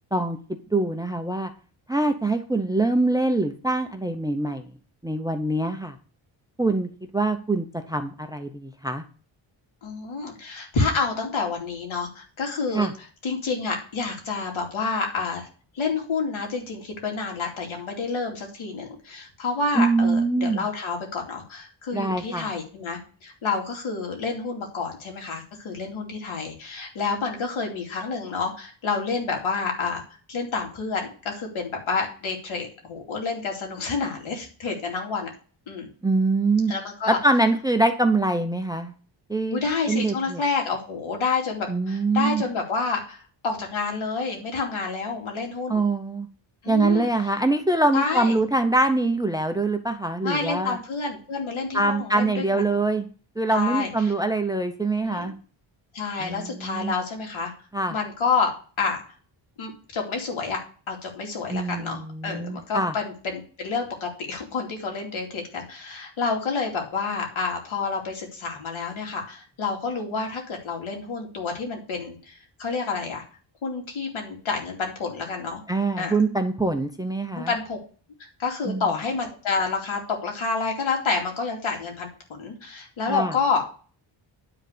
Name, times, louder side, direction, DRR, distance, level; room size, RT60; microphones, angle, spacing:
voice 1, 0.7-1.5 1.9-4.7 5.0-5.9 6.6-9.0 12.7-12.9 19.7-20.7 21.9-22.5 36.0-36.7 37.1-38.9 39.3-39.6 39.9-40.4 41.7-42.4 45.7-46.3 46.7-50.8 51.7-53.1 53.4-55.3 56.2-57.0 57.7-58.0 61.5-62.9 75.7-77.5 78.7-78.9 83.1-83.3, right 2 dB, 10° right, 7 dB, 0.7 m, -24 dB
voice 2, 9.8-12.9 13.2-15.5 15.7-30.0 30.3-35.3 35.7-35.9 36.7-37.2 39.5-45.8 46.6-47.1 47.9-48.3 50.2-52.8 53.5-54.1 55.0-55.3 55.9-57.5 57.9-58.5 58.8-59.0 59.6-60.6 60.9-73.2 73.6-75.6 76.0-76.1 77.3-77.8 78.2-83.6, left 4 dB, 75° left, 1 dB, 2.8 m, -29 dB
9.9 x 3.9 x 6.7 m, 0.39 s
wide cardioid pair, 145°, 48 cm